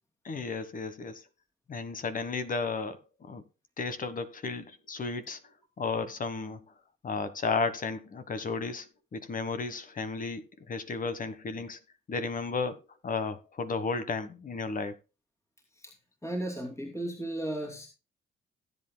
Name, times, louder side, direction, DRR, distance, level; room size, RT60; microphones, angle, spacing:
voice 1, 0.2-1.2 1.7-3.0 3.3-3.4 3.8-5.4 5.8-6.6 7.0-10.4 10.7-11.8 12.1-12.8 13.0-15.0, left 4 dB, 45° left, 1.4 m, -33 dB
voice 2, 16.2-17.9, right 1 dB, 15° left, 2.8 m, -34 dB
17.0 x 8.1 x 2.2 m
cardioid pair, 90°, 20 cm